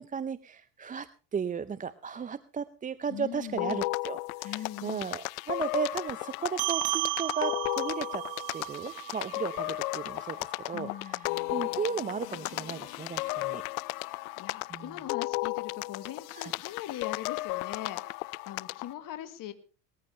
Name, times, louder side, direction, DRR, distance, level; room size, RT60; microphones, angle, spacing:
voice 1, 0.0-8.2 8.5-13.6 14.7-14.9 16.3-16.5, right 6 dB, 20° right, 15 dB, 0.6 m, -35 dB
voice 2, 3.1-3.8 4.4-5.1 10.7-11.3 13.8-19.5, left 12 dB, 50° left, 10 dB, 1.8 m, -41 dB
sound 1, 3.6-18.9, left 23 dB, 75° left, 0.6 m, -35 dB
sound 2, 6.6-11.4, right 20 dB, 75° right, 0.9 m, -35 dB
19.5 x 14.5 x 3.3 m, 0.36 s
supercardioid pair, 95°, 42 cm